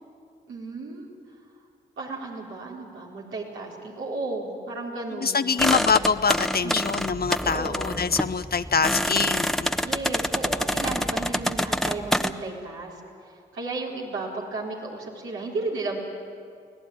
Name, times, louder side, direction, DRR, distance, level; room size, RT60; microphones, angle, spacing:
voice 1, 0.5-1.1 2.0-5.4 6.6-6.9 7.4-7.9 9.8-12.9 13.3-16.0, right 3 dB, 85° right, -4 dB, 4.2 m, -34 dB
voice 2, 5.2-9.7, left 5 dB, 50° left, 12 dB, 0.8 m, -24 dB
sound 1, 5.6-12.3, equal, ahead, 1.1 m, -27 dB
24.5 x 17.0 x 9.6 m, 2.3 s
supercardioid pair, 40°, 20 cm